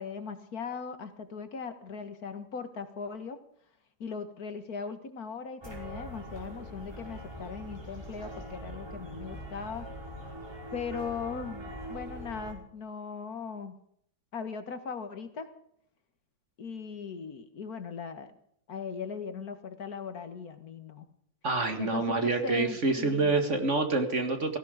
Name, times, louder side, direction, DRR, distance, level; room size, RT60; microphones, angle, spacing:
voice 1, 0.0-3.4 4.0-9.9 10.7-13.7 14.3-15.5 16.6-18.4 18.7-21.1 21.8-23.4, left 5 dB, 75° left, 9 dB, 2.1 m, -39 dB
sound 1, 5.6-12.5, equal, 15° right, 5.3 m, -42 dB
voice 2, 21.4-24.6, right 3 dB, 50° right, 7 dB, 2.1 m, -27 dB
17.0 x 16.0 x 5.1 m, 0.68 s
omnidirectional pair, 1.6 m